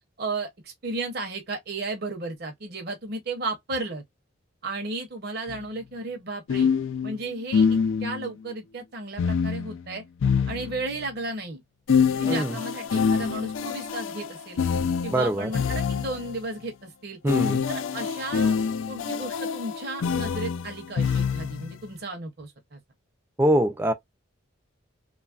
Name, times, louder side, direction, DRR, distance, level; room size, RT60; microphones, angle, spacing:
voice 1, 0.2-4.0 4.6-6.7 7.0-10.0 10.5-11.6 12.2-14.6 15.0-17.2 17.7-18.6 18.9-22.8, right 2 dB, 50° right, 0.7 m, -34 dB
sound 1, 5.5-5.6 6.5-8.3 9.2-11.1 11.9-16.4 17.3-21.8, left 6 dB, 70° left, 0.4 m, -26 dB
voice 2, 12.3-12.6 15.1-15.5 17.2-17.6 23.4-23.9, right 1 dB, 10° right, 0.3 m, -23 dB
3.0 x 2.3 x 2.3 m
head